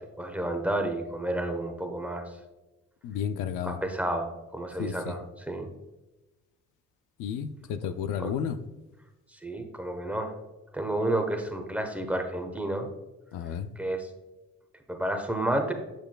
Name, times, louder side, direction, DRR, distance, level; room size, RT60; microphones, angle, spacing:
voice 1, 0.2-2.2 3.6-5.7 8.2-8.3 9.3-10.3 10.7-12.9 13.8-14.1 14.9-15.7, right 1 dB, 5° right, 4 dB, 1.0 m, -30 dB
voice 2, 3.0-3.8 4.8-5.2 7.2-8.6 13.3-13.7, left 8 dB, 90° left, 11 dB, 0.5 m, -32 dB
7.8 x 6.7 x 2.3 m, 1.1 s
cardioid pair, 90°, 30 cm